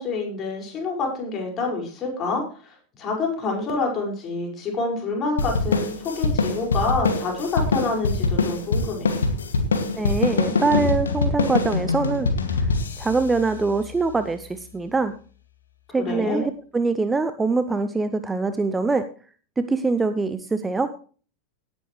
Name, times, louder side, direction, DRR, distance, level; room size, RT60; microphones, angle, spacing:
voice 1, 0.0-9.1 16.0-16.4, left 3 dB, 30° left, 0 dB, 5.5 m, -27 dB
sound 1, 5.4-14.2, left 3 dB, 70° left, 2.2 m, -24 dB
voice 2, 10.0-12.3 13.0-15.1 15.9-19.1 19.6-20.9, right 3 dB, 10° right, 11 dB, 0.8 m, -23 dB
18.0 x 9.8 x 3.2 m, 0.40 s
figure-of-eight pair, 90°, 0 cm